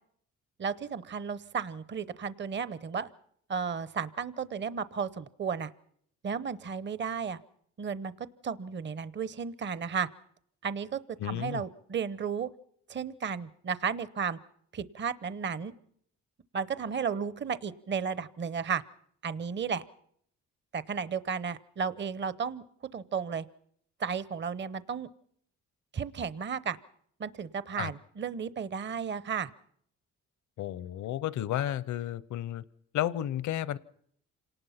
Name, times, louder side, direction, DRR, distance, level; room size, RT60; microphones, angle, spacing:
voice 1, 0.6-3.1 3.5-5.7 6.2-7.4 7.8-10.1 10.6-12.5 12.9-14.4 14.7-15.7 16.5-18.8 19.2-19.8 20.7-22.6 22.9-23.5 24.0-25.1 25.9-26.8 27.2-29.5, right 6 dB, 40° right, 17 dB, 0.8 m, -33 dB
voice 2, 11.2-11.6 27.8-27.9 30.6-32.6 32.9-33.8, left 12 dB, 70° left, 20 dB, 0.8 m, -32 dB
27.0 x 19.0 x 5.8 m, 0.65 s
cardioid pair, 90°, 30 cm